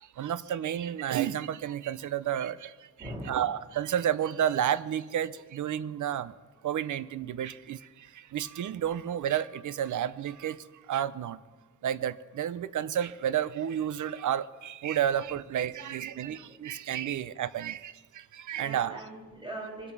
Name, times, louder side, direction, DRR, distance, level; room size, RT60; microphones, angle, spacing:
voice 1, 0.0-2.9 3.3-6.3 6.6-11.4 11.8-19.0, right 10 dB, 70° right, 17 dB, 0.7 m, -31 dB
voice 2, 3.0-3.4 15.7-16.5 18.5-19.9, right 1 dB, 15° right, -2 dB, 5.1 m, -42 dB
24.5 x 8.6 x 6.1 m, 1.3 s
wide cardioid pair, 125°, 31 cm